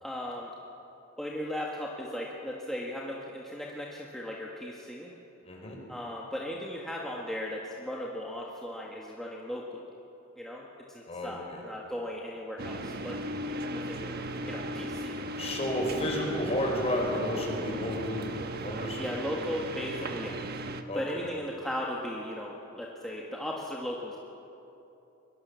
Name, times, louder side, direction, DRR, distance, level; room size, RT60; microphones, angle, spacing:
voice 1, 0.0-0.5 1.2-5.1 5.9-9.8 10.4-13.2 13.6-15.1 18.9-20.4 20.9-24.2, left 1 dB, ahead, -3 dB, 1.7 m, -37 dB
voice 2, 5.4-5.8 11.1-11.6 15.4-18.3 18.6-19.1 20.0-20.1 20.9-21.2, left 1 dB, 30° left, -1 dB, 5.2 m, -32 dB
sound 1, 12.6-20.8, right 1 dB, 50° right, 1.3 m, -37 dB
22.5 x 22.5 x 7.0 m, 2.9 s
head